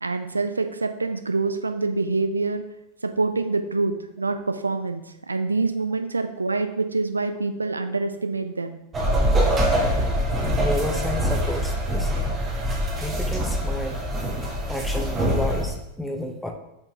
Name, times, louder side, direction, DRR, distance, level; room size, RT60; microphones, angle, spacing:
voice 1, 0.0-2.6 3.0-8.8, right 3 dB, 80° right, 8 dB, 0.4 m, -26 dB
sound 1, 8.9-15.6, equal, 20° right, 1.3 m, -24 dB
voice 2, 10.5-12.1 13.0-14.0 14.7-16.5, left 1 dB, 5° left, 2 dB, 0.9 m, -31 dB
7.6 x 4.5 x 2.9 m, 0.86 s
figure-of-eight pair, 90°, 0 cm